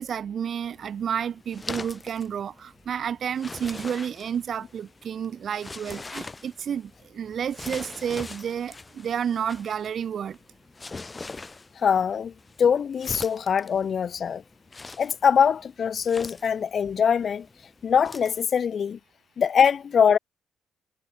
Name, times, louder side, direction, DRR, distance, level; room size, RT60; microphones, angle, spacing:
voice 1, 0.0-10.4, right 8 dB, 55° right, 3.5 m, -30 dB
sound 1, 0.6-18.4, left 3 dB, 25° left, 6.0 m, -43 dB
voice 2, 11.8-12.3 12.6-14.4 15.0-17.4 17.8-19.0 19.4-20.2, left 7 dB, 50° left, 1.8 m, -22 dB
cardioid pair, 90°, 0 cm